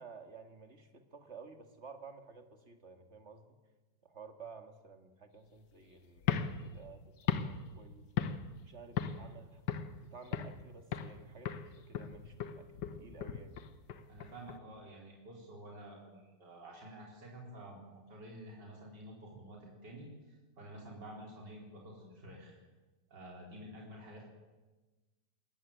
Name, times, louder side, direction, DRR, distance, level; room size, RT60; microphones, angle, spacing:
voice 1, 0.0-3.6 4.0-8.1 8.6-9.6 10.1-13.6, right 5 dB, 40° right, 7 dB, 2.2 m, -53 dB
sound 1, 6.2-8.6 9.0-9.3 9.7-10.6 10.9-11.2 11.5-14.6, left 8 dB, 75° left, 1.8 m, -37 dB
voice 2, 14.1-22.6 23.1-24.2, right 1 dB, 75° right, -2 dB, 5.0 m, -50 dB
21.0 x 19.5 x 8.9 m, 1.2 s
omnidirectional pair, 1.9 m